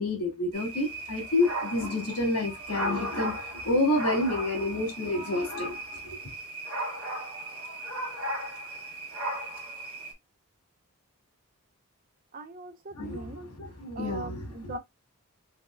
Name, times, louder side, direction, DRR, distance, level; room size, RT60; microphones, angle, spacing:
voice 1, 0.0-3.4 3.6-5.8 12.9-14.8, left 2 dB, 85° left, 2.3 m, -29 dB
sound 1, 0.5-10.1, right 1 dB, 65° right, 1.9 m, -36 dB
voice 2, 12.3-13.4 13.9-14.8, right 2 dB, 40° right, 0.7 m, -40 dB
5.2 x 2.8 x 2.3 m
head